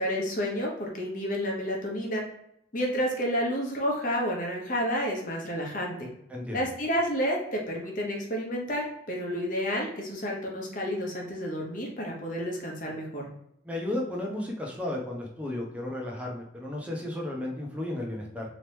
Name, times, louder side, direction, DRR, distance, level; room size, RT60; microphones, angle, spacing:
voice 1, 0.0-2.2 2.7-6.1 6.5-13.3, equal, 40° left, -1 dB, 1.0 m, -30 dB
voice 2, 6.3-6.7 13.6-18.4, left 1 dB, 5° right, -2 dB, 0.8 m, -33 dB
4.0 x 3.1 x 3.4 m, 0.78 s
head